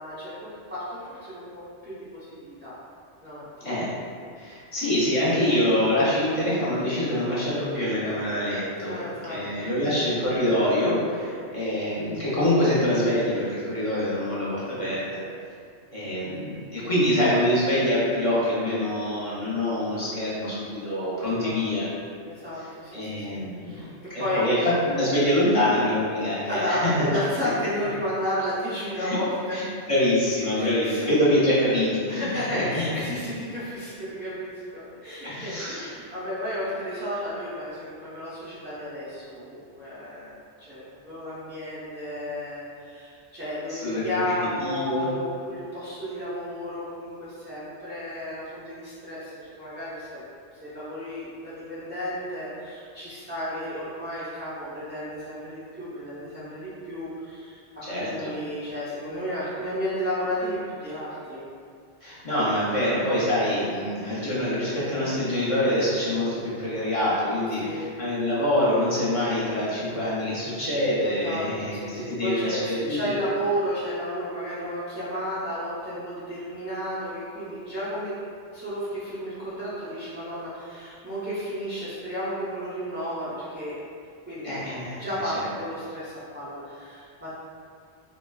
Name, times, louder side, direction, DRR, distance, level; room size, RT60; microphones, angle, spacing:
voice 1, 0.0-2.7 3.2-3.8 8.9-9.7 16.8-16.9 21.2-21.6 22.3-24.5 26.5-29.7 30.5-31.2 32.2-40.4 40.7-50.2 50.6-61.4 67.6-67.9 71.0-78.2 78.5-83.8 84.3-84.6 85.0-87.4, equal, 15° right, -13 dB, 0.4 m, -33 dB
voice 2, 4.4-8.9 9.2-15.0 15.9-21.8 22.9-27.2 29.0-29.2 29.5-29.6 29.9-32.6 35.2-35.9 43.7-44.0 44.6-45.1 57.8-58.3 62.0-73.1 84.4-85.0 85.2-85.5, left 1 dB, 35° left, -10 dB, 0.7 m, -25 dB
4.1 x 2.1 x 2.3 m, 2.2 s
omnidirectional pair, 1.1 m